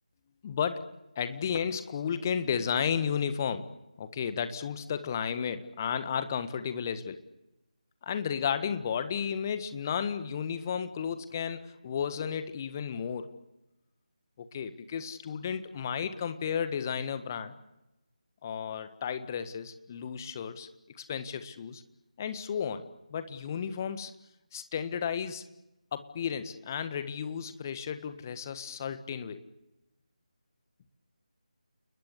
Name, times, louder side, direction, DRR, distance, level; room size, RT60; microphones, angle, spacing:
voice 1, 0.4-3.7 4.0-7.2 8.0-13.3 14.4-17.5 18.4-20.7 21.0-21.8 22.2-24.1 24.5-25.4 25.9-29.4, left 7 dB, 25° left, 11 dB, 1.6 m, -33 dB
30.0 x 21.0 x 8.5 m, 0.92 s
figure-of-eight pair, 155°, 4 cm